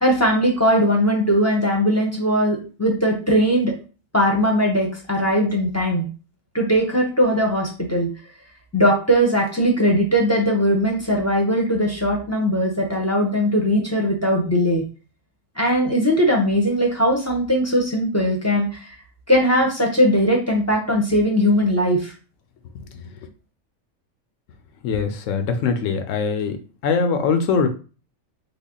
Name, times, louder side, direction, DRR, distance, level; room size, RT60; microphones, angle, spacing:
voice 1, 0.0-3.7 4.1-6.1 6.5-8.1 8.7-14.8 15.6-18.7 19.3-22.1, equal, 15° left, -1 dB, 0.6 m, -19 dB
voice 2, 24.8-26.6 26.8-27.7, left 5 dB, 75° left, 7 dB, 0.9 m, -22 dB
3.5 x 2.1 x 3.7 m, 0.36 s
omnidirectional pair, 1.4 m